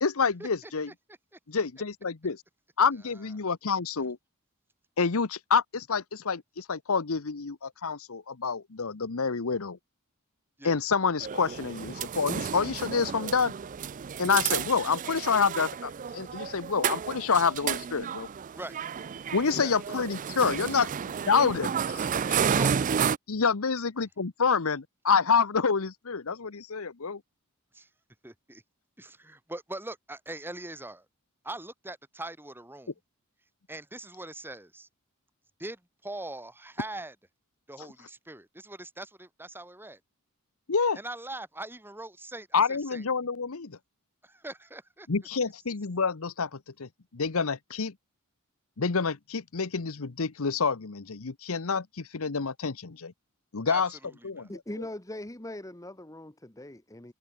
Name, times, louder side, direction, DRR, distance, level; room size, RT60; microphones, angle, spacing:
voice 1, 0.0-0.9 1.5-2.4 2.8-4.2 5.0-9.8 10.6-13.5 14.2-18.3 19.3-20.9 21.3-22.4 23.3-27.2 37.8-37.9 40.7-41.0 42.5-43.8 45.1-47.9 48.8-53.1 53.5-53.9 54.2-54.5, left 5 dB, 70° left, 0.9 m, -28 dB
sound 1, 11.2-23.2, right 7 dB, 35° right, 0.4 m, -31 dB
voice 2, 18.5-18.8 19.6-19.8 22.4-22.8 27.7-27.9 28.2-28.6 29.0-31.1 31.4-32.9 33.7-34.9 35.6-37.2 37.7-40.0 41.0-43.0 44.2-45.1 53.7-54.5, right 1 dB, 10° right, 3.8 m, -41 dB
voice 3, 54.5-57.1, left 1 dB, 15° left, 1.4 m, -41 dB
head